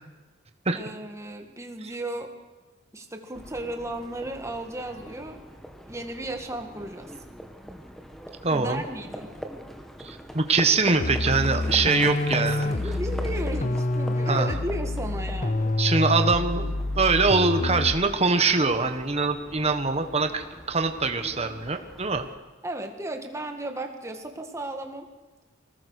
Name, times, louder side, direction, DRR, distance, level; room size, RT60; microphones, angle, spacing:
voice 1, 0.7-2.3 2.9-5.4 5.9-7.1 8.5-9.3 11.9-12.0 12.4-15.7 22.6-25.1, right 1 dB, 15° right, 4 dB, 2.0 m, -35 dB
Livestock farm animals working animals, 3.3-22.3, equal, ahead, 1.5 m, -42 dB
voice 2, 8.4-8.8 10.0-12.6 14.3-14.5 15.8-22.2, right 4 dB, 30° right, 7 dB, 1.4 m, -23 dB
sound 1, 11.0-18.2, left 2 dB, 40° left, 0.7 m, -27 dB
25.0 x 19.5 x 6.6 m, 1.3 s
head